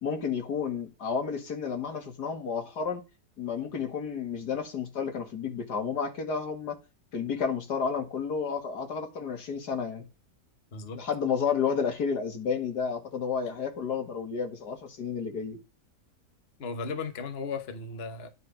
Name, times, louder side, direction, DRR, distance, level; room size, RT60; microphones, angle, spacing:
voice 1, 0.0-3.0 3.4-6.8 7.1-10.0 10.9-15.6, left 6 dB, 85° left, 2.5 m, -31 dB
voice 2, 10.7-11.0 16.6-18.3, left 4 dB, 40° left, 1.4 m, -36 dB
11.0 x 4.9 x 5.1 m
omnidirectional pair, 1.7 m